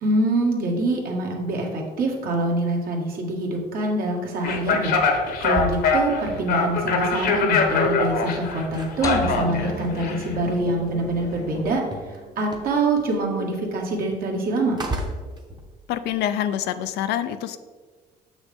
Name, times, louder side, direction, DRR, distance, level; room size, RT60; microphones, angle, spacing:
voice 1, 0.0-5.0 5.4-14.8, right 2 dB, 60° right, 0 dB, 1.6 m, -25 dB
sound 1, 4.4-11.8, left 4 dB, 65° left, 1.1 m, -24 dB
sound 2, 5.2-7.1 7.3-11.3 11.5-16.3, right 1 dB, 25° right, 1.0 m, -36 dB
sound 3, 9.0-11.3, right 1 dB, 20° left, 0.7 m, -32 dB
voice 2, 15.9-17.6, left 10 dB, 80° left, 11 dB, 0.5 m, -26 dB
6.5 x 6.1 x 3.5 m, 1.4 s
cardioid pair, 110°, 17 cm